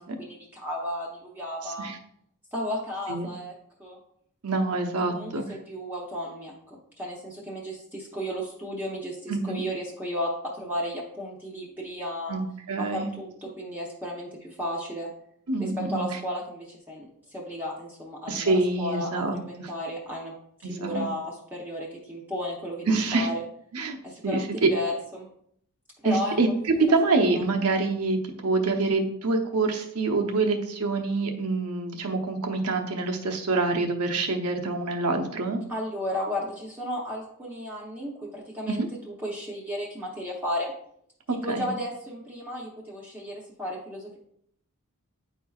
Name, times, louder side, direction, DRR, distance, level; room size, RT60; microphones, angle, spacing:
voice 1, 0.0-1.9 2.5-3.5 3.8-4.0 5.1-12.4 12.8-15.1 15.6-18.5 18.8-20.3 20.6-23.4 24.0-25.3 26.0-26.4 26.8-26.9 27.4-27.5 35.7-40.7 41.4-44.2, left 1 dB, 10° right, -5 dB, 0.8 m, -34 dB
voice 2, 4.4-5.4 9.3-9.6 12.3-12.4 12.7-13.1 15.5-16.1 18.3-19.7 20.6-21.1 22.9-23.3 23.7-24.0 24.2-24.7 26.0-26.5 26.9-35.6 38.7-38.9 41.3-41.7, right 3 dB, 90° right, 4 dB, 0.9 m, -26 dB
9.2 x 4.5 x 2.4 m, 0.70 s
head